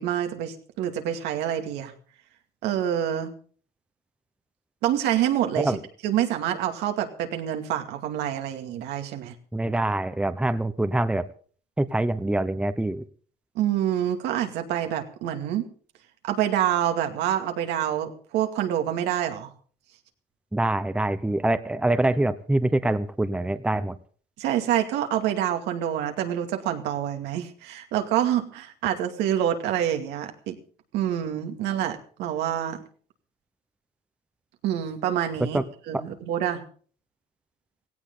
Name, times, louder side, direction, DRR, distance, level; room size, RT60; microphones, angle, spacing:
voice 1, 0.0-1.9 2.6-3.3 4.8-5.7 6.0-9.3 13.6-15.6 16.2-19.5 24.4-30.6 30.9-32.8 34.6-35.6 35.9-36.6, right 11 dB, 90° right, 5 dB, 2.4 m, -27 dB
voice 2, 9.5-11.3 11.8-13.0 20.5-24.0 35.4-35.6 35.9-36.1, right 2 dB, 5° right, 12 dB, 0.9 m, -25 dB
17.0 x 16.5 x 3.9 m, 0.43 s
cardioid pair, 110°, 17 cm